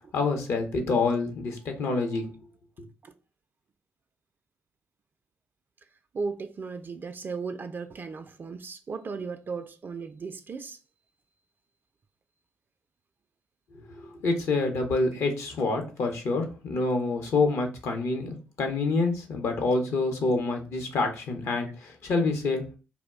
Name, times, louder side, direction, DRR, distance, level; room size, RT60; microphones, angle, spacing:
voice 1, 0.1-2.3 14.1-22.6, left 3 dB, 65° left, 0.7 m, -27 dB
voice 2, 6.1-10.8, right 4 dB, 40° right, 0.3 m, -36 dB
2.3 x 2.1 x 3.5 m
hypercardioid pair, 45°, 5 cm